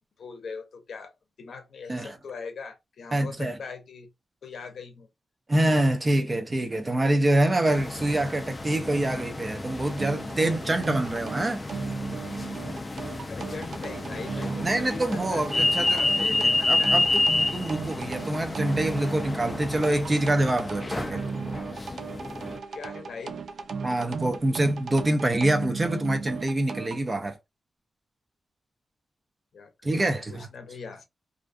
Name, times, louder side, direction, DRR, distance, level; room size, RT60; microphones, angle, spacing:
voice 1, 0.2-1.1 1.4-4.1 4.4-5.1 13.3-17.0 22.7-23.4 29.5-30.0 30.3-31.1, left 5 dB, 70° left, 0.6 m, -41 dB
voice 2, 3.1-3.6 5.5-11.6 14.6-17.2 17.5-21.2 23.8-27.4 29.8-30.5, right 1 dB, 25° right, 0.6 m, -26 dB
sound 1, 7.7-22.6, left 2 dB, 25° left, 0.4 m, -30 dB
sound 2, 9.8-27.0, right 5 dB, 75° right, 0.4 m, -36 dB
2.5 x 2.2 x 2.4 m
wide cardioid pair, 135°, 0 cm